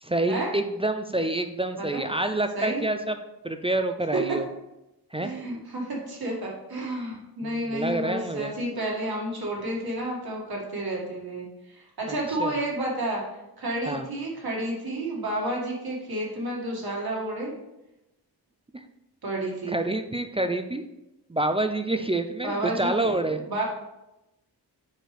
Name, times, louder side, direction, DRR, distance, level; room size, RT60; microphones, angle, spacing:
voice 1, 0.0-3.2 3.4-4.4 5.1-5.3 7.4-8.5 12.4-12.5 13.9-14.1 18.7-18.8 19.7-20.8 21.3-23.4, right 2 dB, 15° right, 7 dB, 0.4 m, -27 dB
voice 2, 5.2-13.2 13.6-17.5 19.2-19.8 22.4-23.6, right 1 dB, 65° right, -3 dB, 2.0 m, -31 dB
6.6 x 4.6 x 3.3 m, 0.93 s
cardioid pair, 65°, 40 cm